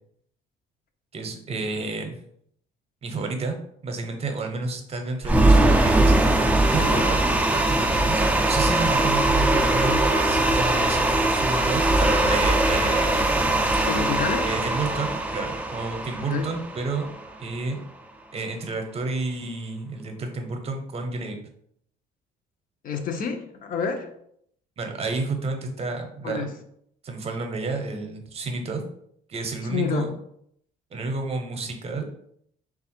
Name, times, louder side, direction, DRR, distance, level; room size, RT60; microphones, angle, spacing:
voice 1, 1.1-2.2 3.0-3.6 3.8-7.2 7.5-13.5 14.5-17.1 17.4-17.8 18.3-21.4 24.8-26.5 27.0-28.8 29.3-30.1 30.9-32.1, right 3 dB, 35° right, 4 dB, 0.7 m, -30 dB
sound 1, 5.2-17.4, right 2 dB, 10° right, 0.4 m, -21 dB
voice 2, 13.9-14.5 16.2-16.5 22.8-24.1 26.2-26.5 29.7-30.1, left 6 dB, 55° left, 6 dB, 0.7 m, -28 dB
3.4 x 2.4 x 4.3 m, 0.70 s
cardioid pair, 110°, 17 cm